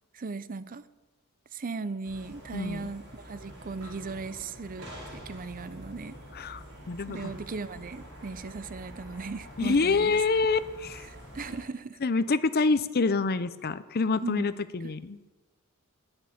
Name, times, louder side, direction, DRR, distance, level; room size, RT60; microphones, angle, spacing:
voice 1, 0.1-0.8 1.5-6.2 7.1-10.1 11.3-12.0 14.2-14.5 14.8-14.9, right 4 dB, 40° right, 15 dB, 0.5 m, -37 dB
sound 1, 2.0-11.6, equal, 75° right, 4.6 m, -46 dB
voice 2, 2.5-2.9 6.3-7.3 9.6-11.1 12.0-15.3, left 4 dB, 45° left, 15 dB, 0.6 m, -27 dB
11.0 x 8.9 x 9.3 m, 1.2 s
head